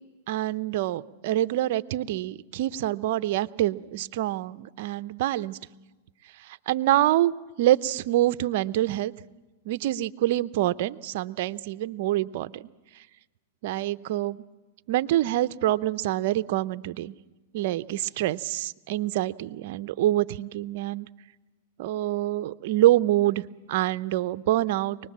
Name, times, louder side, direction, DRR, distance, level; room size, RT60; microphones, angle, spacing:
voice 1, 0.3-5.6 6.5-7.3 7.6-9.1 9.7-12.6 13.6-14.4 14.9-17.1 17.5-21.1 21.8-23.4 23.7-25.0, right 14 dB, 55° right, 14 dB, 0.7 m, -26 dB
24.0 x 20.0 x 7.5 m, 1.1 s
hypercardioid pair, 135°, 0 cm